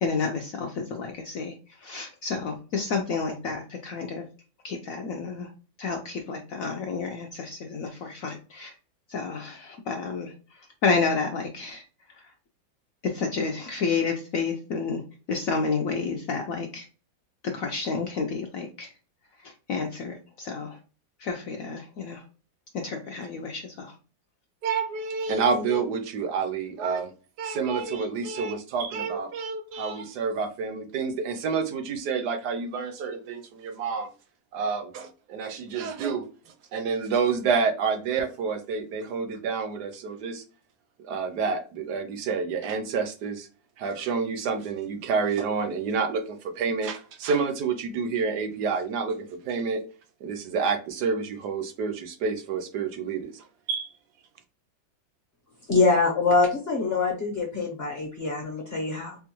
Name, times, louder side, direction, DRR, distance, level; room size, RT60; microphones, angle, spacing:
voice 1, 0.0-4.2 4.6-5.5 5.8-8.7 9.1-11.8 12.1-12.3 13.0-15.0 15.3-16.9 17.4-18.9 19.4-20.8 21.2-22.2 22.7-23.9, left 4 dB, 75° left, 0.7 m, -30 dB
voice 2, 24.6-27.1 27.4-34.1 34.5-36.3 36.7-40.4 41.0-43.5 43.8-49.8 50.2-53.9, right 5 dB, 75° right, 1.0 m, -28 dB
voice 3, 55.7-59.2, left 4 dB, 45° left, 0.9 m, -24 dB
4.4 x 2.3 x 2.9 m
omnidirectional pair, 2.0 m